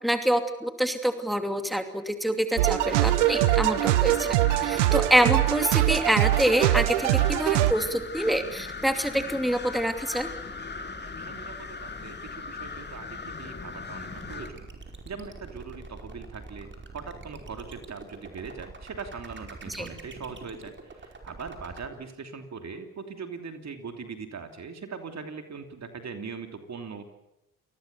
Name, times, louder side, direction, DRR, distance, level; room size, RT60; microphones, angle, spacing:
voice 1, 0.0-10.3 19.7-19.9, equal, ahead, 7 dB, 2.8 m, -26 dB
sound 1, 2.6-7.7, right 15 dB, 90° right, 0.8 m, -23 dB
sound 2, 2.8-14.5, left 4 dB, 30° left, 2.7 m, -39 dB
voice 2, 10.9-14.7 15.0-27.2, right 5 dB, 50° right, 6 dB, 3.0 m, -41 dB
sound 3, 14.1-21.9, right 3 dB, 35° right, 5.0 m, -44 dB
28.5 x 20.0 x 6.9 m, 0.88 s
hypercardioid pair, 45°, 35 cm